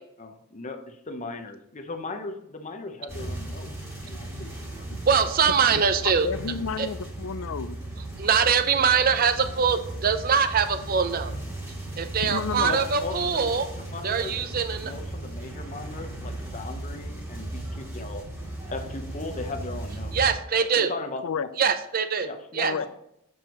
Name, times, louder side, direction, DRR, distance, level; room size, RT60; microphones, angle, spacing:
voice 1, 0.2-4.9 12.5-13.4 13.9-14.3 14.8-18.3 18.7-20.2 20.7-21.5 22.2-22.9, left 3 dB, 35° left, 5 dB, 0.7 m, -37 dB
sound 1, 3.1-20.3, right 1 dB, 10° right, 1.6 m, -36 dB
voice 2, 5.1-6.3 6.8-6.9 8.2-11.3 12.0-13.7 14.0-14.9 20.1-20.9 21.6-22.3 22.5-22.7, right 6 dB, 40° right, 10 dB, 0.5 m, -23 dB
voice 3, 6.2-7.8 12.2-12.7 21.2-21.5 22.6-22.9, left 6 dB, 65° left, 15 dB, 0.4 m, -31 dB
6.6 x 6.1 x 3.0 m, 0.77 s
head